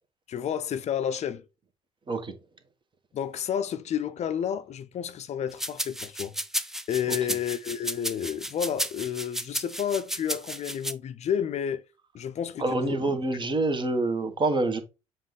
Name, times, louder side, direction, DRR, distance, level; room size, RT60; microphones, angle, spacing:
voice 1, 0.3-1.4 3.1-11.8 12.1-13.1, left 9 dB, 45° left, 0.7 m, -31 dB
sound 1, 5.6-10.9, equal, ahead, 0.7 m, -32 dB
voice 2, 12.6-14.8, right 2 dB, 30° right, 1.4 m, -26 dB
7.3 x 2.7 x 5.3 m
figure-of-eight pair, 55°, 16 cm